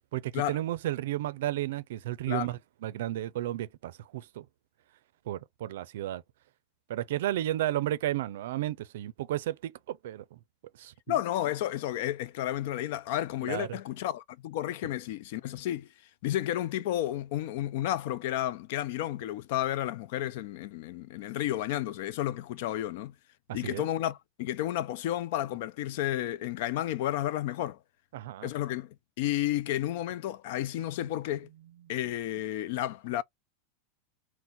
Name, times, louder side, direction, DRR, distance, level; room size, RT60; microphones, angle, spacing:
voice 1, 0.1-4.4 5.3-6.2 6.9-10.4 10.8-11.2 13.4-13.8 23.5-23.9 28.1-28.5, right 13 dB, 70° right, 0.4 m, -33 dB
voice 2, 11.1-15.9 16.2-23.1 23.5-27.8 28.4-31.5 31.9-33.2, left 13 dB, 50° left, 0.4 m, -32 dB
3.8 x 2.1 x 4.2 m
supercardioid pair, 175°, 0 cm